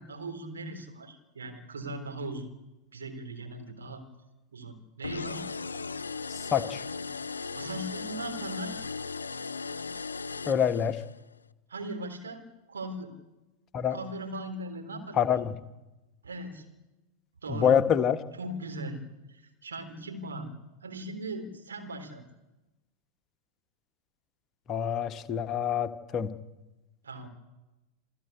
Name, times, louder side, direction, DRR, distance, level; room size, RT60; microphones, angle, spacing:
voice 1, 0.0-2.5 2.9-4.0 4.5-5.4 7.4-8.8 11.7-13.1 13.9-15.4 16.2-16.6 17.4-17.8 18.4-19.0 19.3-20.5 20.8-22.2 27.0-27.3, right 1 dB, 70° right, 5 dB, 3.7 m, -39 dB
sound 1, 5.0-11.2, left 4 dB, 75° left, 0.7 m, -37 dB
voice 2, 6.3-6.8 10.5-11.0 13.7-14.0 15.1-15.5 17.5-18.2 24.7-26.3, left 8 dB, 30° left, 8 dB, 1.3 m, -26 dB
28.0 x 15.0 x 8.4 m, 1.1 s
figure-of-eight pair, 90°, 0 cm